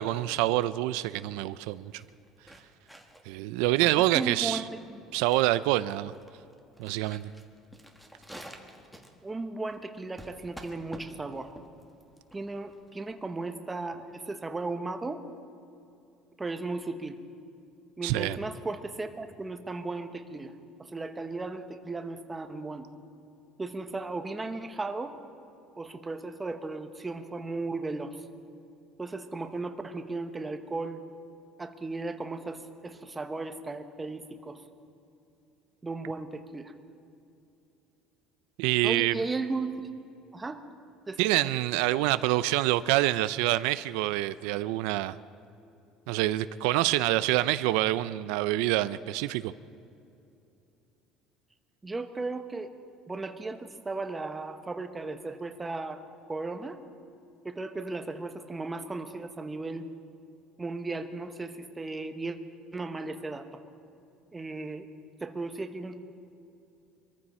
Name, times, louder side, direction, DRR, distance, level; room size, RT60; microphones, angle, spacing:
voice 1, 0.0-1.9 3.3-4.6 5.1-6.1 6.8-7.3 18.0-18.4 38.6-39.2 41.2-45.2 46.1-49.5, right 16 dB, 90° right, 14 dB, 0.4 m, -26 dB
sound 1, 1.6-13.3, equal, ahead, 1.4 m, -50 dB
voice 2, 3.8-5.0 9.2-11.5 12.3-15.2 16.4-17.2 18.0-20.5 20.8-22.9 23.6-25.1 25.8-28.2 29.0-31.0 31.6-34.6 35.8-36.7 38.8-39.9 40.3-40.6 41.1-41.5 51.8-52.7 53.1-56.0 56.3-56.8 57.4-59.9 60.6-62.4 62.7-63.6 64.3-64.9 65.2-66.0, right 3 dB, 15° right, 8 dB, 1.0 m, -36 dB
23.5 x 14.5 x 4.3 m, 2.7 s
cardioid pair, 135°, 0 cm